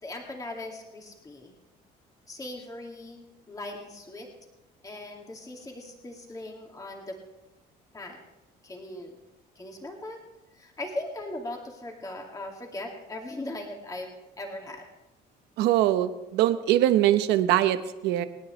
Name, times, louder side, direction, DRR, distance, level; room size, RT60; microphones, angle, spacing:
voice 1, 0.0-1.6 2.3-4.3 4.8-7.2 7.9-8.2 8.6-9.2 9.6-10.2 10.5-14.9, left 1 dB, 20° left, 1 dB, 2.4 m, -39 dB
voice 2, 15.6-18.3, right 13 dB, 90° right, 10 dB, 0.9 m, -22 dB
27.0 x 9.6 x 3.3 m, 0.99 s
cardioid pair, 110°, 17 cm